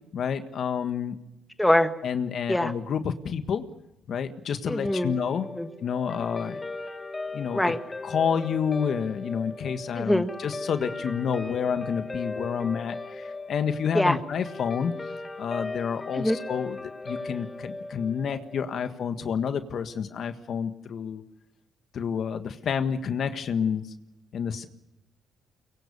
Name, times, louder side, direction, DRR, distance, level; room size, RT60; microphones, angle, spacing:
voice 1, 0.1-1.2 2.0-3.7 4.1-5.5 5.8-6.6 7.3-7.7 8.0-14.9 15.4-16.8 17.0-21.2 21.9-23.9 24.3-24.7, left 7 dB, 60° left, 9 dB, 1.6 m, -29 dB
voice 2, 1.6-1.9 2.5-2.7 4.7-5.1 5.6-5.7 7.5-7.8 9.9-10.3 13.9-14.2 16.1-16.4, left 1 dB, 5° left, 8 dB, 1.6 m, -23 dB
Guitar, 4.8-19.4, left 3 dB, 20° left, 1.5 m, -38 dB
23.5 x 23.0 x 7.0 m, 0.89 s
cardioid pair, 85°, 0 cm